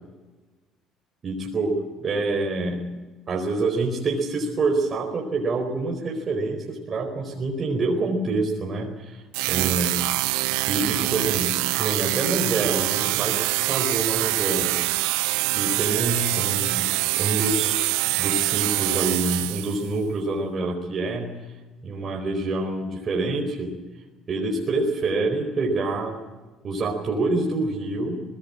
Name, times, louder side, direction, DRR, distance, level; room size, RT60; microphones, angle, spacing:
voice 1, 1.2-1.7 2.0-2.9 3.3-9.9 10.7-14.8 15.5-17.9 18.2-21.3 21.8-23.7 24.3-26.2 26.6-28.2, right 3 dB, 40° right, 1 dB, 4.5 m, -26 dB
sound 1, 9.3-19.9, right 20 dB, 85° right, 0.7 m, -24 dB
21.5 x 18.5 x 8.7 m, 1.2 s
supercardioid pair, 75°, 0 cm